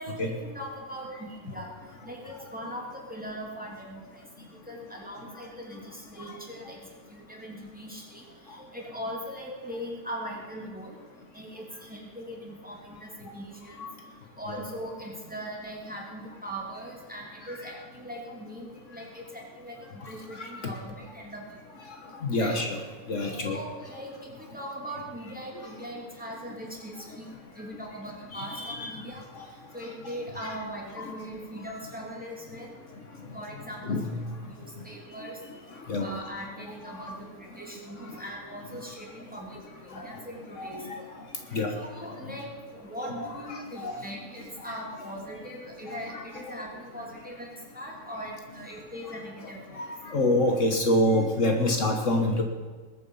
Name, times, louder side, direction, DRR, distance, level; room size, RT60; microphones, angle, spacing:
voice 1, 0.0-21.9 22.3-22.7 23.3-50.2, equal, 5° right, -2 dB, 2.9 m, -41 dB
voice 2, 20.4-20.7 22.2-22.8 23.1-23.6 28.3-28.9 33.8-34.1 35.9-36.1 36.9-37.0 40.0-40.1 40.6-41.0 41.5-41.7 43.5-44.0 49.8-52.4, left 1 dB, 65° left, 3 dB, 1.7 m, -26 dB
20.5 x 9.1 x 5.6 m, 1.4 s
omnidirectional pair, 1.4 m